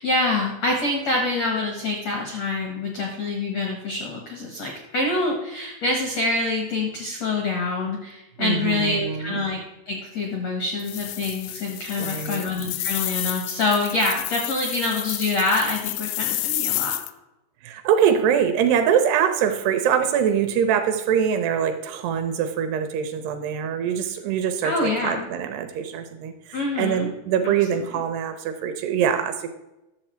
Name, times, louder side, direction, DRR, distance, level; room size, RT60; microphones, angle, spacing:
voice 1, 0.0-9.6 9.9-16.9 24.6-25.3 26.5-27.1 27.4-27.5 27.9-28.0, left 2 dB, 70° left, 1 dB, 1.5 m, -26 dB
voice 2, 8.4-9.4 12.0-12.5 17.6-29.5, right 8 dB, 80° right, 8 dB, 2.6 m, -23 dB
sound 1, 10.8-17.1, left 17 dB, 90° left, 2.9 m, -30 dB
11.0 x 7.1 x 4.4 m, 0.95 s
omnidirectional pair, 5.1 m